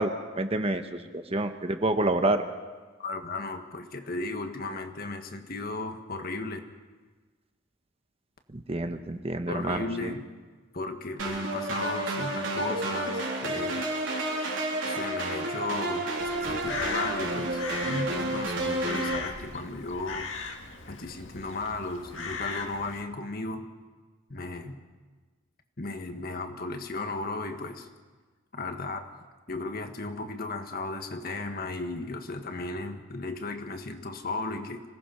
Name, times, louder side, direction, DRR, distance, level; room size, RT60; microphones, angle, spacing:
voice 1, 0.0-2.4 8.5-10.2, right 2 dB, 30° right, 7 dB, 1.1 m, -28 dB
voice 2, 3.0-6.6 9.5-10.2 10.7-13.8 14.9-16.1 16.4-20.3 20.9-23.7 24.3-24.8 25.8-27.9 28.5-29.1 29.5-34.8, left 3 dB, 50° left, 6 dB, 1.6 m, -35 dB
sound 1, 11.2-19.2, right 1 dB, 70° right, 3.8 m, -30 dB
Crow, 16.2-23.0, left 5 dB, 65° left, 1.9 m, -38 dB
26.0 x 17.5 x 5.8 m, 1.4 s
head